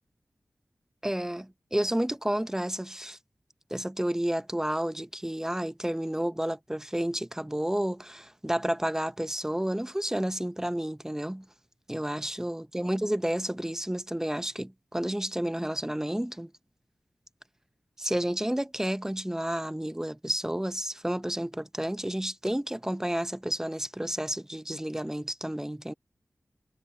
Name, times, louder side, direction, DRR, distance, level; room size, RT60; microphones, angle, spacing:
voice 1, 1.0-3.2 3.7-11.5 11.9-16.5 18.0-25.9, right 1 dB, 10° right, 0.8 m, -31 dB
cardioid pair, 40°, 5 cm